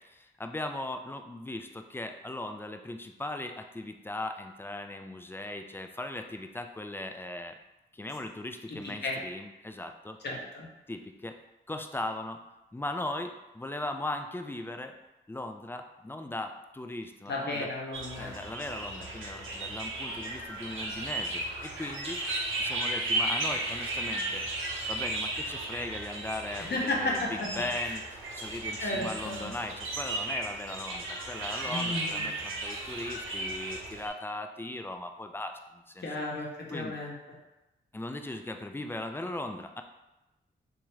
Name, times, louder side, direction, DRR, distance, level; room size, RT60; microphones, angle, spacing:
voice 1, 0.4-1.7 1.9-7.5 8.0-10.2 10.9-11.3 11.7-12.4 12.7-14.9 15.3-17.7 18.2-22.2 22.6-24.4 24.9-28.0 28.3-35.5 36.0-36.1 36.7-37.0 37.9-39.8, left 1 dB, 10° left, 6 dB, 0.3 m, -38 dB
voice 2, 8.7-9.2 10.2-10.7 17.3-18.3 26.6-27.5 27.8-28.0 28.8-29.4 31.7-32.3 36.0-37.1, left 2 dB, 55° left, -2 dB, 0.8 m, -33 dB
sound 1, 17.9-34.1, right 2 dB, 75° right, 0.7 m, -35 dB
2.9 x 2.4 x 3.2 m, 0.97 s
cardioid pair, 50°, 21 cm